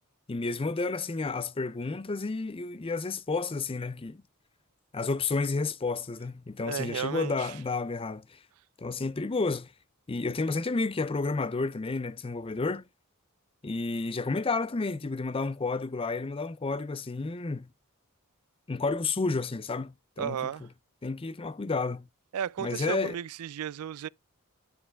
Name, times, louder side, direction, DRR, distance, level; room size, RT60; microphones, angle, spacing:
voice 1, 0.3-4.2 4.9-8.4 8.8-9.7 10.1-12.8 13.6-17.7 18.7-20.4 21.0-22.1 22.6-23.2, left 3 dB, 25° left, 0.5 m, -31 dB
voice 2, 6.6-7.5 20.2-20.7 22.3-24.1, right 8 dB, 90° right, 0.4 m, -34 dB
10.0 x 4.9 x 3.5 m
head